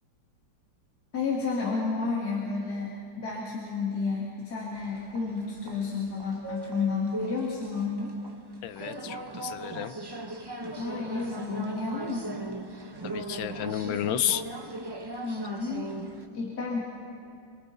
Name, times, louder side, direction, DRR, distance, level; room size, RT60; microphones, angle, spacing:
voice 1, 1.1-8.2 10.8-12.4 15.2-15.9 16.3-16.8, left 4 dB, 55° left, -5 dB, 2.7 m, -31 dB
sound 1, 4.7-16.3, right 2 dB, 30° right, 0.4 m, -39 dB
voice 2, 8.6-9.9 13.0-14.4, left 11 dB, 80° left, 12 dB, 1.5 m, -31 dB
28.0 x 23.5 x 4.1 m, 2.5 s
omnidirectional pair, 2.1 m